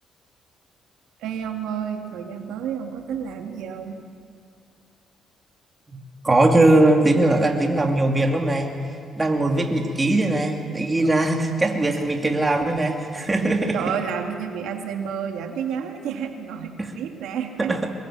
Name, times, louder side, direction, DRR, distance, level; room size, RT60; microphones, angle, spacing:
voice 1, 1.2-4.0 11.0-11.3 13.7-17.7, right 7 dB, 90° right, 4 dB, 1.9 m, -30 dB
voice 2, 6.2-8.7 9.2-13.8 16.8-16.9 17.6-17.8, right 2 dB, 20° right, 2 dB, 2.7 m, -20 dB
22.5 x 21.5 x 7.5 m, 2.5 s
cardioid pair, 90°, 0 cm